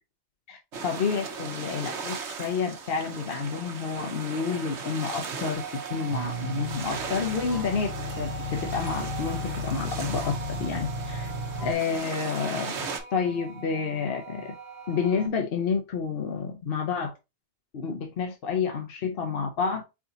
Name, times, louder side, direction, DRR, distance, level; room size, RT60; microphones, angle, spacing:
sound 1, 0.7-13.0, right 5 dB, 85° right, 1.2 m, -38 dB
voice 1, 0.8-5.6 5.9-7.9 8.2-11.3 11.6-14.5 14.9-17.1 17.7-19.8, left 5 dB, 60° left, 3 dB, 0.9 m, -29 dB
sound 2, 5.5-15.3, right 6 dB, 50° right, 1.1 m, -43 dB
sound 3, 6.1-11.7, left 1 dB, 30° right, 1.4 m, -34 dB
4.8 x 2.7 x 3.9 m, 0.25 s
omnidirectional pair, 1.1 m